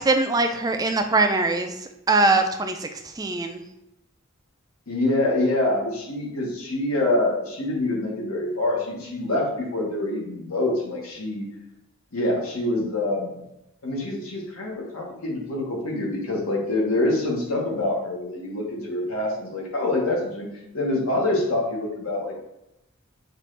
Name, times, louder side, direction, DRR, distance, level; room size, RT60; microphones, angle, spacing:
voice 1, 0.0-1.7 2.1-3.6, right 3 dB, 15° right, 6 dB, 0.3 m, -22 dB
voice 2, 4.9-11.5 12.1-13.3 13.8-20.5 20.7-22.3, left 2 dB, 75° left, -2 dB, 1.2 m, -25 dB
6.4 x 2.5 x 3.2 m, 0.86 s
head